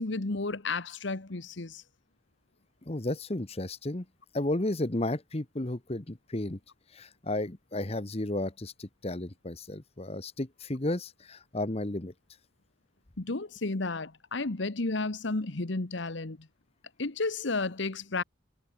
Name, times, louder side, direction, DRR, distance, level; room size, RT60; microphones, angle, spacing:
voice 1, 0.0-1.8 13.2-16.5 17.0-18.2, left 3 dB, 65° left, 1.2 m, -32 dB
voice 2, 2.9-4.0 4.3-6.6 6.9-12.1, left 1 dB, 30° left, 1.2 m, -33 dB
head